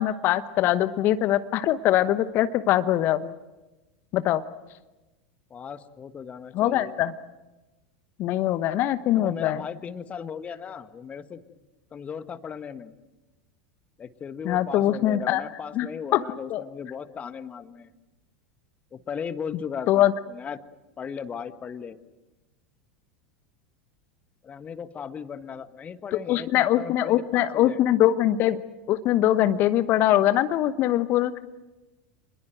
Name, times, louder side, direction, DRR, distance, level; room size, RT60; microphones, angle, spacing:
voice 1, 0.0-3.3 4.1-4.4 6.5-7.1 8.2-9.6 14.4-15.4 15.8-15.9 16.1-16.2 16.5-16.6 19.9-20.1 26.3-28.6 28.9-31.4, left 13 dB, 45° left, 12 dB, 1.0 m, -22 dB
voice 2, 5.5-6.9 9.1-11.4 11.9-12.9 14.0-17.9 18.9-20.6 21.0-22.0 24.4-28.0, left 7 dB, 25° left, 11 dB, 1.5 m, -37 dB
28.0 x 21.5 x 7.8 m, 1.1 s
figure-of-eight pair, 85°, 5 cm